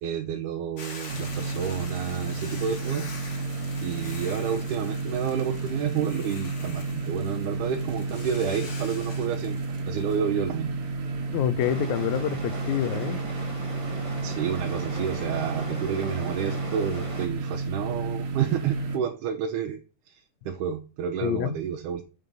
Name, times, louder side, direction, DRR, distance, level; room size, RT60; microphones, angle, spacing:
voice 1, 0.0-3.1 3.8-9.6 9.9-10.7 14.2-19.8 20.1-22.0, right 8 dB, 85° right, 2.4 m, -30 dB
Hiss / Boiling, 0.8-10.2, left 3 dB, 50° left, 0.9 m, -44 dB
sound 1, 1.1-19.0, right 3 dB, 65° right, 2.6 m, -31 dB
voice 2, 11.3-13.2 21.2-21.6, left 12 dB, 80° left, 1.9 m, -27 dB
sound 2, 11.6-17.3, right 2 dB, 50° right, 0.3 m, -38 dB
7.5 x 5.5 x 5.3 m
omnidirectional pair, 3.5 m